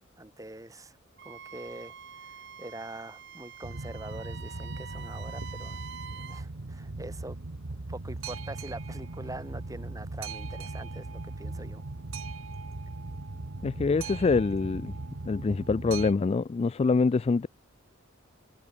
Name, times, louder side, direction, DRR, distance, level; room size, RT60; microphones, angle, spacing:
voice 1, 0.2-0.9 1.2-1.9 2.2-5.8 6.1-7.4 7.9-11.8, right 1 dB, 15° right, 4.2 m, -44 dB
Wind instrument woodwind instrument, 1.2-6.4, right 7 dB, 60° right, 3.5 m, -46 dB
Boat Water vehicle, 3.6-16.1, right 3 dB, 90° right, 1.2 m, -38 dB
voice 2, 13.6-14.9 15.3-17.5, left 4 dB, 30° left, 0.3 m, -25 dB
head